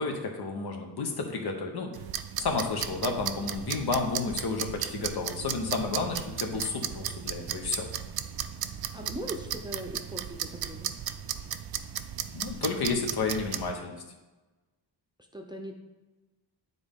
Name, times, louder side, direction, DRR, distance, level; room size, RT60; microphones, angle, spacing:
voice 1, 0.0-1.9 2.4-7.9 12.3-14.0, left 4 dB, 60° left, 3 dB, 1.0 m, -31 dB
sound 1, 1.9-13.7, right 10 dB, 60° right, 0.5 m, -36 dB
voice 2, 8.9-10.9 15.3-15.8, equal, 10° right, 1 dB, 0.6 m, -39 dB
9.4 x 3.9 x 3.6 m, 1.1 s
wide cardioid pair, 115°, 43 cm